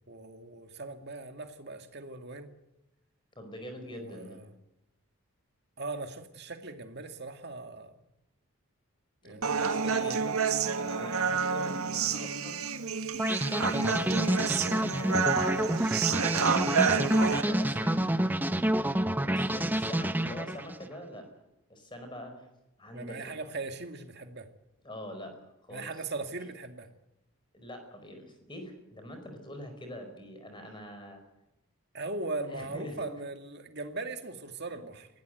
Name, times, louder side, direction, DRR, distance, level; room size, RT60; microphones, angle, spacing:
voice 1, 0.1-2.5 3.9-4.5 5.8-7.9 9.2-10.2 22.9-24.5 25.7-26.9 31.9-35.1, right 3 dB, 50° right, 6 dB, 2.2 m, -39 dB
voice 2, 3.4-4.4 9.2-10.4 10.8-12.6 13.5-16.4 17.2-18.0 19.2-21.3 21.7-22.5 22.8-23.3 24.8-25.4 25.6-25.9 26.4-26.5 27.5-31.2 32.5-33.1, left 1 dB, 20° left, 6 dB, 4.9 m, -44 dB
Human voice, 9.4-17.4, right 5 dB, 75° right, 1.5 m, -29 dB
sound 1, 13.2-20.9, right 1 dB, 10° right, 0.7 m, -28 dB
23.0 x 17.0 x 8.0 m, 0.89 s
head